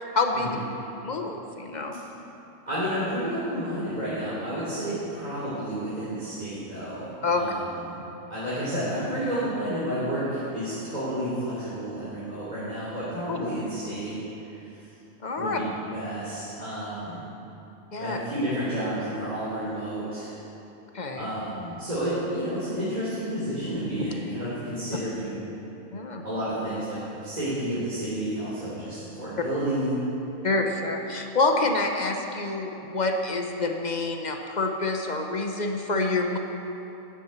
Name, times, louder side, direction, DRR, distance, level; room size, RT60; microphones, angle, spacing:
voice 1, 0.1-0.6 1.0-2.0 7.2-7.4 13.3-13.4 15.2-15.6 17.9-18.2 20.9-21.3 25.9-26.2 30.4-36.4, left 3 dB, 35° left, 3 dB, 0.9 m, -27 dB
voice 2, 2.7-7.9 8.3-14.1 14.4-14.9 15.4-17.2 17.9-20.3 21.2-25.4 26.2-30.0, right 1 dB, 30° right, -12 dB, 3.6 m, -31 dB
15.0 x 9.9 x 4.5 m, 3.0 s
omnidirectional pair, 1.5 m